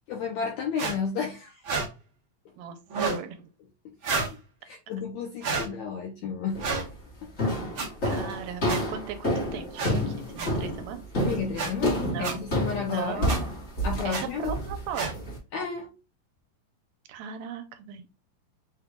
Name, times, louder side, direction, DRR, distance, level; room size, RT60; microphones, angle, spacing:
voice 1, 0.1-1.6 3.8-3.9 4.6-6.6 7.2-7.6 8.1-8.2 11.2-13.3 13.8-14.6 15.5-15.9, left 6 dB, 80° left, 1.6 m, -32 dB
sound 1, 0.8-0.9 1.6-1.9 2.9-3.2 4.0-4.3 5.4-5.7 6.6-6.8 7.8-7.9 8.7-8.8 9.8-9.9 10.4-10.5 11.5-11.7 12.2-12.3 13.3-13.4 14.1-14.2 14.9-15.1, right 4 dB, 65° right, 1.2 m, -29 dB
voice 2, 3.1-3.5 8.0-11.4 12.1-12.4 12.9-13.5 14.0-15.1 17.1-18.1, right 8 dB, 80° right, 2.3 m, -38 dB
sound 2, 6.5-6.9 7.4-15.4, equal, 40° left, 1.1 m, -29 dB
6.3 x 2.3 x 3.6 m
omnidirectional pair, 4.0 m